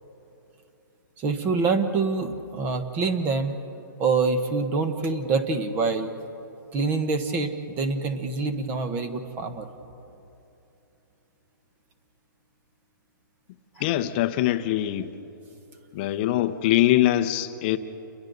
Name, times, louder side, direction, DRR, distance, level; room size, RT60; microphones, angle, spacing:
voice 1, 1.2-3.6 4.0-6.1 6.7-9.7, right 4 dB, 15° right, 1.1 m, -26 dB
voice 2, 13.8-15.1 15.9-17.8, left 14 dB, 25° left, 0.9 m, -23 dB
30.0 x 22.5 x 4.0 m
hypercardioid pair, 160°, 11 cm